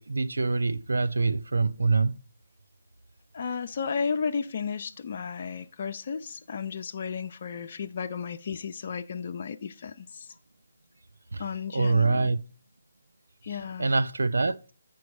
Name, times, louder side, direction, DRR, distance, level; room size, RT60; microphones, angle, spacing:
voice 1, 0.0-2.2 11.3-11.4 11.7-12.4 13.8-14.6, right 3 dB, 80° right, 0.5 m, -25 dB
voice 2, 3.3-10.3 11.4-12.3 13.4-13.9, left 6 dB, 45° left, 0.5 m, -33 dB
8.5 x 6.0 x 4.6 m
figure-of-eight pair, 150°, 0 cm